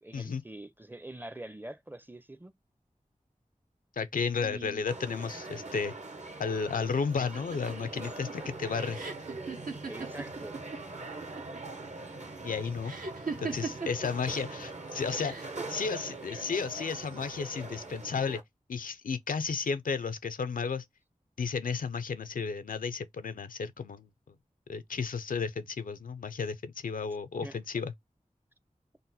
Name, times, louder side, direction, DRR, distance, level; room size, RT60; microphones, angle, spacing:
voice 1, 0.0-2.5 4.4-4.8 8.4-8.8 9.8-10.5 27.4-27.6, right 1 dB, 15° right, 0.5 m, -44 dB
voice 2, 4.0-5.9 6.4-9.0 12.4-12.9 13.4-18.4 18.7-20.8 21.4-24.1 24.7-27.9, left 5 dB, 85° left, 0.4 m, -33 dB
sound 1, 4.9-18.4, right 2 dB, 55° right, 0.9 m, -42 dB
sound 2, 7.2-10.8 11.1-11.7 12.8-14.1 15.0-15.6, right 4 dB, 85° right, 1.0 m, -38 dB
3.8 x 2.1 x 4.0 m
wide cardioid pair, 40°, 14 cm